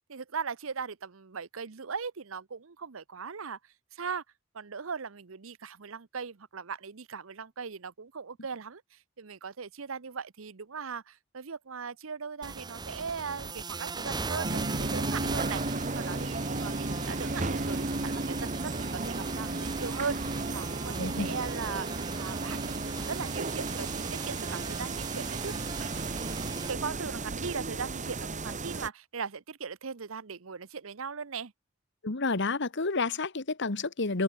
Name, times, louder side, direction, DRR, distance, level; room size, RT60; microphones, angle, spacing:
voice 1, 0.1-3.6 3.9-4.2 4.5-25.7 26.7-31.5, right 5 dB, 65° right, 0.8 m, -39 dB
sound 1, 12.4-26.7, right 4 dB, 20° right, 0.7 m, -39 dB
sound 2, 14.4-28.9, right 2 dB, 35° right, 1.5 m, -34 dB
voice 2, 21.0-21.3 32.0-34.2, left 3 dB, 55° left, 1.4 m, -30 dB
open air
head